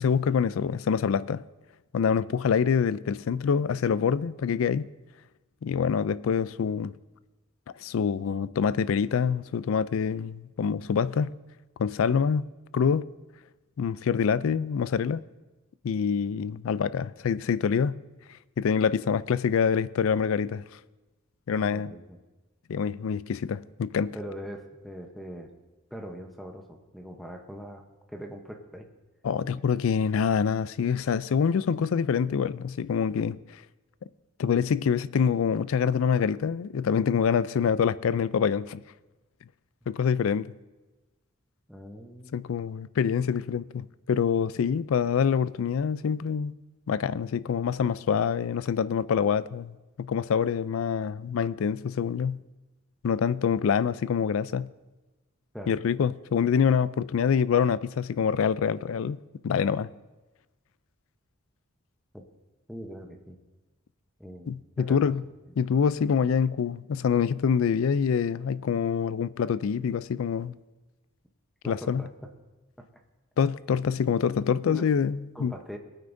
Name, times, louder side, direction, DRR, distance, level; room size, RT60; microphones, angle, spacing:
voice 1, 0.0-1.4 1.9-4.9 5.6-6.9 7.8-11.3 11.8-12.5 12.7-13.1 13.8-15.2 15.8-18.0 18.6-20.6 21.5-21.9 22.7-24.2 29.2-33.6 34.4-38.8 39.9-40.5 42.3-46.6 46.9-52.4 53.0-54.7 55.7-59.2 59.4-59.9 64.5-65.2 65.6-70.5 71.6-72.0 73.4-75.5, left 6 dB, 70° left, 0.4 m, -26 dB
voice 2, 21.5-22.2 24.1-25.5 25.9-28.9 41.7-42.6 55.5-55.8 62.1-62.2 62.7-63.4 64.2-65.0 71.6-72.3 74.7-74.9 75.3-75.8, equal, ahead, 0.8 m, -42 dB
19.5 x 9.2 x 2.6 m
head